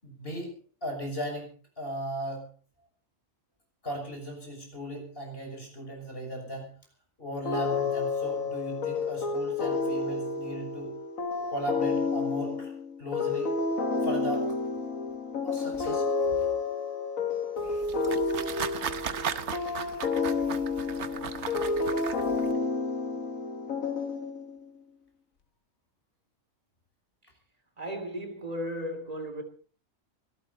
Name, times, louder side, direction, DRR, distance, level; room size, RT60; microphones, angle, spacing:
voice 1, 0.0-2.5 3.8-6.7 7.2-10.9 11.5-12.7 13.0-13.6 14.0-14.6 15.4-16.1 16.4-16.5, equal, 45° left, 6.6 m, -37 dB
sound 1, 7.4-24.6, left 4 dB, 80° left, 1.9 m, -30 dB
sound 2, 17.6-22.5, right 7 dB, 60° right, 1.2 m, -36 dB
voice 2, 27.8-29.4, equal, 30° right, 3.0 m, -35 dB
24.5 x 13.0 x 4.2 m
omnidirectional pair, 1.4 m